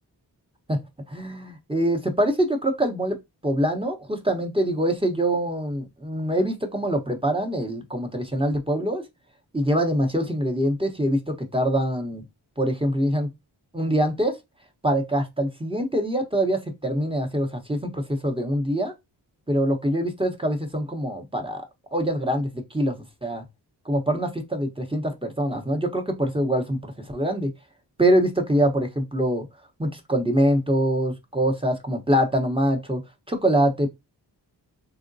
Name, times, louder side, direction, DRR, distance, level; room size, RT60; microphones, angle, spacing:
voice 1, 1.1-3.2 3.4-9.0 9.5-12.2 12.6-13.3 13.7-14.3 14.8-18.9 19.5-21.6 21.9-23.4 23.9-27.5 28.0-29.5 29.8-33.0 33.3-33.9, right 1 dB, 15° right, 0.9 m, -24 dB
3.7 x 2.1 x 2.6 m
cardioid pair, 45°, 43 cm